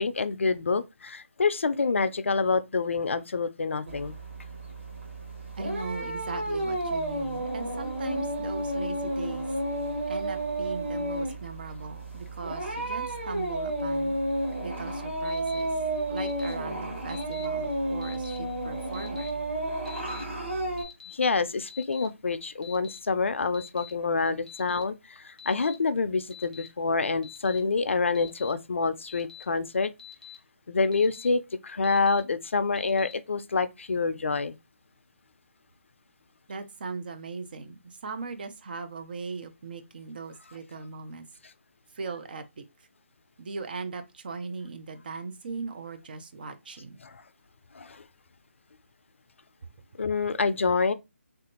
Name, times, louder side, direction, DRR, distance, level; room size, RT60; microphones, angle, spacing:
voice 1, 0.0-4.2 21.1-29.9 30.7-34.6 47.0-47.2 47.7-48.0 50.0-50.9, left 4 dB, 65° left, 0.4 m, -27 dB
sound 1, 3.9-20.8, right 1 dB, 70° right, 1.8 m, -32 dB
voice 2, 5.6-9.5 10.1-14.2 14.6-15.7 16.1-19.4 24.2-24.4 36.5-41.3 41.9-42.6 43.4-47.0, right 4 dB, 45° right, 0.5 m, -39 dB
Alarm, 15.2-15.6 16.2-16.5 17.1-17.4 18.0-18.4 18.9-19.3 19.8-20.2 20.8-21.1 21.7-22.1 22.6-23.0 23.5-23.9 24.5-24.8 25.4-25.7 26.3-26.7 27.2-27.6 28.1-28.5 29.1-29.4 30.0-30.3 30.9-31.3 31.8-32.2 32.8-33.1, left 10 dB, 5° left, 0.4 m, -46 dB
3.4 x 2.5 x 2.8 m
figure-of-eight pair, 150°, 7 cm